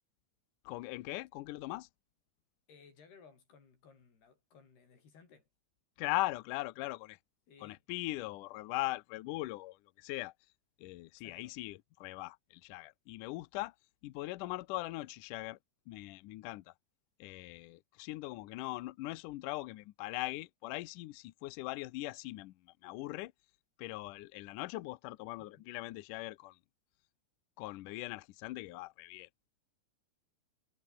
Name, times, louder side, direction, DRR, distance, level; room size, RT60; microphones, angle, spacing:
voice 1, 0.7-1.9 6.0-7.2 7.6-10.3 10.8-13.8 14.0-15.6 15.9-16.7 17.2-23.3 23.8-26.6 27.6-29.3, left 19 dB, 85° left, 1.8 m, -40 dB
voice 2, 2.7-5.5 7.5-7.8 11.2-11.5 25.5-25.6, left 5 dB, 70° left, 7.5 m, -60 dB
omnidirectional pair, 4.8 m